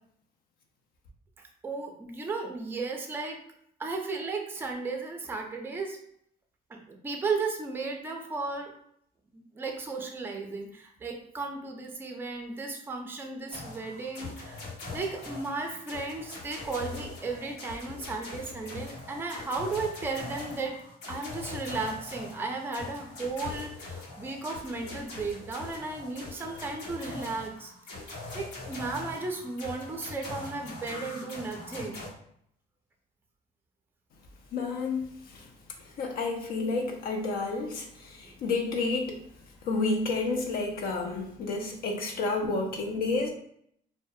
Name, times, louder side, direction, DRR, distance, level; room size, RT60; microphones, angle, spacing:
voice 1, 1.4-3.4 3.8-6.0 6.7-8.7 9.3-14.6 14.9-20.7 21.1-27.7 28.0-32.1 38.2-38.3 42.4-42.5, right 3 dB, 15° right, 2 dB, 0.4 m, -35 dB
sound 1, 13.5-32.1, left 3 dB, 90° left, 0.9 m, -42 dB
voice 2, 34.5-35.5 35.8-39.3 39.6-43.3, left 3 dB, 65° left, 3 dB, 0.4 m, -30 dB
2.3 x 2.1 x 2.6 m, 0.68 s
cardioid pair, 110°, 17 cm